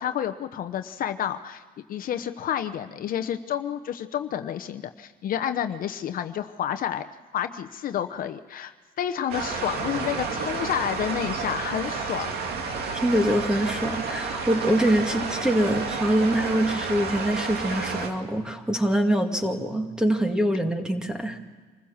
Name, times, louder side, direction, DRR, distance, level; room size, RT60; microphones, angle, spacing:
voice 1, 0.0-1.6 1.9-7.0 7.3-12.3, left 10 dB, 55° left, 9 dB, 0.9 m, -30 dB
sound 1, 9.3-18.1, right 4 dB, 70° right, 2.5 m, -31 dB
voice 2, 13.0-21.4, right 1 dB, 5° right, 4 dB, 2.2 m, -24 dB
25.5 x 15.5 x 7.2 m, 1.5 s
cardioid pair, 110°, 17 cm